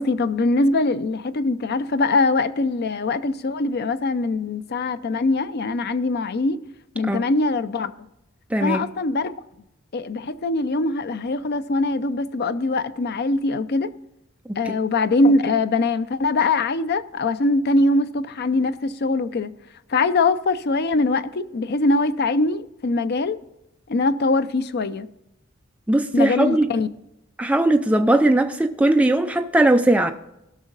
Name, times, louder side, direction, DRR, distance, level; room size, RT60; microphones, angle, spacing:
voice 1, 0.0-6.6 7.0-7.9 8.6-9.3 9.9-13.9 14.6-19.5 19.9-23.4 23.9-25.1 26.1-26.9, left 2 dB, 50° left, 0.5 m, -22 dB
voice 2, 8.5-8.9 14.5-14.6 25.9-26.7 27.4-30.1, right 1 dB, 5° right, 0.4 m, -19 dB
17.0 x 6.2 x 4.0 m
head